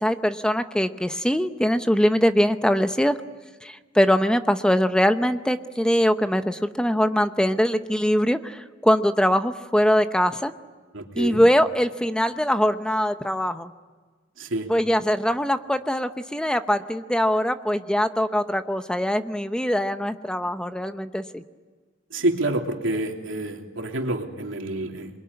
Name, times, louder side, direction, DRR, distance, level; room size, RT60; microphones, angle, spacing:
voice 1, 0.0-3.2 3.6-10.5 11.2-13.7 14.7-21.4, equal, 5° left, 9 dB, 0.8 m, -22 dB
voice 2, 10.9-11.4 14.4-14.7 22.1-25.1, right 1 dB, 85° right, 2 dB, 3.0 m, -28 dB
27.0 x 22.5 x 9.6 m, 1.4 s
head